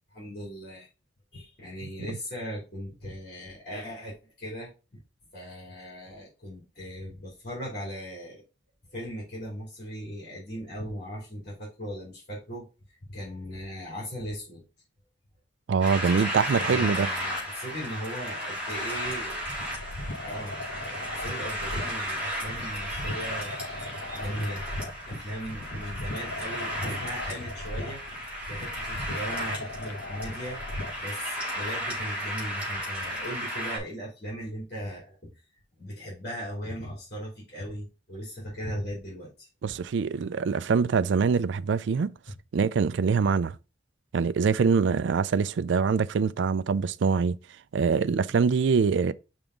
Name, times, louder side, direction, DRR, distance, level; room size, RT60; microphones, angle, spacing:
voice 1, 0.1-0.9 1.3-5.0 5.3-8.4 8.9-14.6 16.6-19.4 20.2-23.5 24.1-28.0 28.5-35.3 35.8-39.8, equal, 45° left, 2.7 m, -38 dB
voice 2, 15.7-17.1 39.6-42.1 42.5-43.6 44.1-47.4 47.7-49.1, right 5 dB, 70° right, 0.4 m, -24 dB
sound 1, 15.8-33.8, equal, 5° right, 2.9 m, -34 dB
sound 2, 19.0-31.1, left 1 dB, 80° left, 1.0 m, -39 dB
5.4 x 3.5 x 5.0 m
head